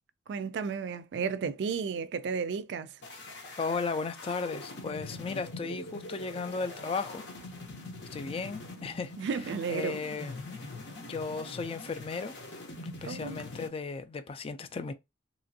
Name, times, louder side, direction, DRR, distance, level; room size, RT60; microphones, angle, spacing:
voice 1, 0.3-3.0 9.2-10.0 13.0-13.4, right 5 dB, 70° right, 0.3 m, -33 dB
sound 1, 3.0-13.7, left 2 dB, 65° left, 0.8 m, -43 dB
voice 2, 3.6-7.2 8.1-9.1 9.7-10.3 10.6-10.7 11.0-12.3 13.0-14.9, left 4 dB, 30° left, 0.3 m, -35 dB
2.9 x 2.5 x 2.7 m
head